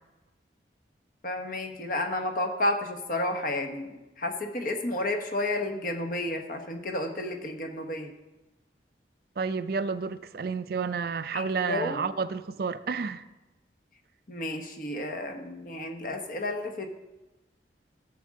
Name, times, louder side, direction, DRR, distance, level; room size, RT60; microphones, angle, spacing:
voice 1, 1.2-8.1 11.3-12.0 14.3-16.9, left 1 dB, 50° left, 5 dB, 1.1 m, -31 dB
voice 2, 9.4-13.2, right 5 dB, 55° right, 13 dB, 0.4 m, -30 dB
14.0 x 7.5 x 3.7 m, 1.1 s
head